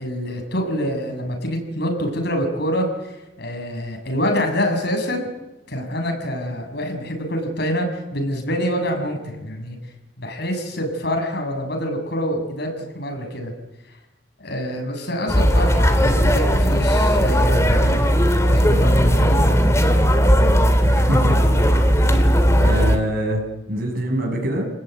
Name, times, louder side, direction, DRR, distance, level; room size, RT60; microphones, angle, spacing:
voice 1, 0.0-5.3 5.7-9.8 10.2-13.5 14.4-18.2 18.5-19.7, equal, 60° left, 4 dB, 7.2 m, -26 dB
sound 1, 15.3-23.0, equal, 15° left, 2.7 m, -16 dB
voice 2, 20.8-21.4 21.7-21.8 22.5-24.7, equal, 55° right, 2 dB, 7.3 m, -24 dB
29.5 x 19.5 x 9.3 m, 1.0 s
head